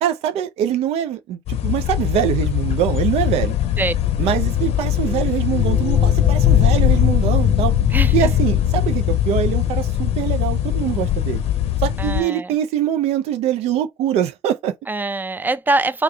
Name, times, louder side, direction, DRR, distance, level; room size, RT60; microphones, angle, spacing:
voice 1, 0.0-3.5 4.2-7.7 8.1-11.4 11.8-14.7, right 10 dB, 80° right, 0.4 m, -23 dB
sound 1, 1.5-12.2, left 11 dB, 75° left, 0.6 m, -19 dB
voice 2, 7.9-8.3 12.0-12.5 14.9-16.0, right 2 dB, 15° right, 0.5 m, -23 dB
3.5 x 2.2 x 3.3 m
hypercardioid pair, 45°, 11 cm